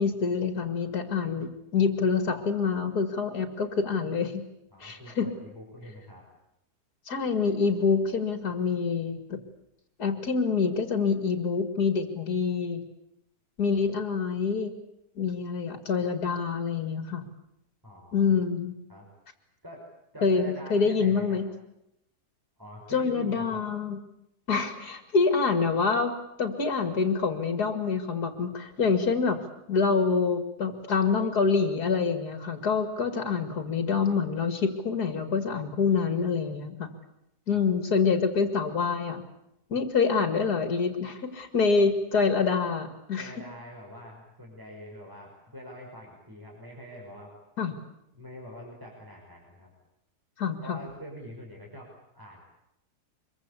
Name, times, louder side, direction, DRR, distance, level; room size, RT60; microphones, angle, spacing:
voice 1, 0.0-4.5 4.8-5.3 7.1-9.4 10.0-12.8 13.6-14.7 15.2-17.2 18.1-18.8 20.2-21.5 22.9-24.0 24.5-29.4 29.7-36.9 37.5-39.3 39.7-43.3 47.6-47.7 50.4-50.8, left 5 dB, 70° left, 7 dB, 2.7 m, -26 dB
voice 2, 4.7-6.2 17.8-18.3 18.9-19.1 19.6-19.8 20.1-21.4 22.6-23.6 37.5-37.6 43.2-47.3 48.1-49.7 50.6-52.4, equal, 10° right, -2 dB, 5.7 m, -45 dB
25.0 x 23.5 x 8.5 m, 0.83 s
omnidirectional pair, 1.7 m